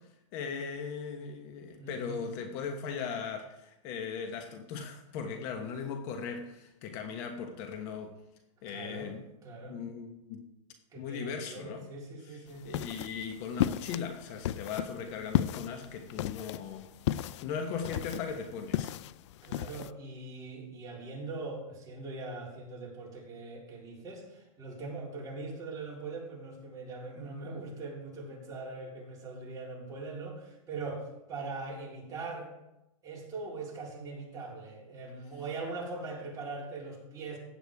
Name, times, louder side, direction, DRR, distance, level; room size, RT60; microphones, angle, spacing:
voice 1, 0.3-8.1 8.6-9.2 9.7-10.5 11.0-11.9 12.6-18.9, left 6 dB, 40° left, 1.2 m, -38 dB
voice 2, 1.8-2.3 8.7-9.1 9.4-9.8 10.9-12.9 17.7-17.8 19.4-32.5 33.0-37.4, right 3 dB, 20° right, 3.8 m, -41 dB
sound 1, 12.5-19.9, left 13 dB, 55° left, 0.4 m, -34 dB
15.5 x 9.4 x 3.6 m
hypercardioid pair, 145°, 18 cm